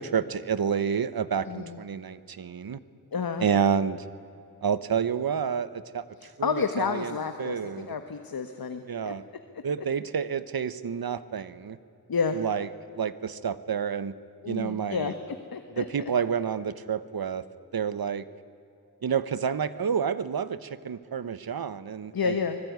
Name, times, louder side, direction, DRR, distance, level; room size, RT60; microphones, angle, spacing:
voice 1, 0.0-2.8 3.4-4.0 4.6-6.0 6.4-7.1 7.4-7.9 8.9-9.2 9.6-11.8 12.3-12.7 13.0-14.1 14.5-15.1 15.8-17.4 17.7-18.2 19.0-22.4, right 7 dB, 70° right, 15 dB, 1.1 m, -29 dB
voice 2, 1.5-1.8 3.1-3.4 6.2-9.1 9.5-9.6 12.1-12.4 14.4-15.1 15.5-15.8 22.1-22.6, left 5 dB, 65° left, 7 dB, 1.4 m, -30 dB
24.5 x 20.5 x 9.5 m, 2.7 s
wide cardioid pair, 95°, 38 cm